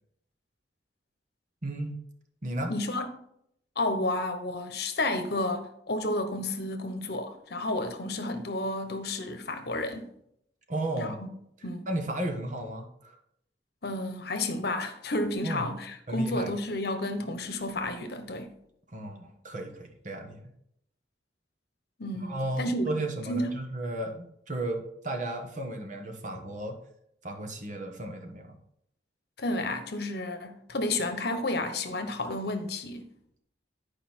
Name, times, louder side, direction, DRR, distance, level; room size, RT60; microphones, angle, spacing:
voice 1, 1.6-2.0 2.4-2.7 10.7-11.1 11.9-13.2 15.4-15.7 16.1-16.5 18.9-20.4 22.2-26.8 27.2-28.6, right 1 dB, 45° right, 1.3 m, -34 dB
voice 2, 2.7-3.1 3.8-10.1 11.0-11.3 11.6-11.9 13.8-18.5 22.0-22.9 23.3-23.6 29.4-33.1, left 2 dB, 65° left, 1.0 m, -31 dB
10.5 x 5.0 x 4.4 m
head